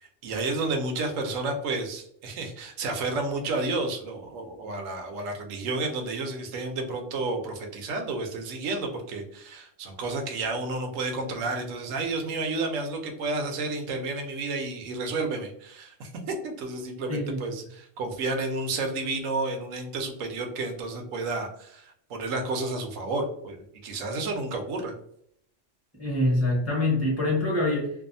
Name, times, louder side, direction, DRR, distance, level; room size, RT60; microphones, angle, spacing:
voice 1, 0.0-24.9, right 3 dB, 85° right, 4 dB, 1.0 m, -31 dB
voice 2, 17.1-17.4 26.0-27.9, left 1 dB, 15° left, -4 dB, 0.9 m, -25 dB
2.6 x 2.3 x 2.5 m, 0.68 s
omnidirectional pair, 1.3 m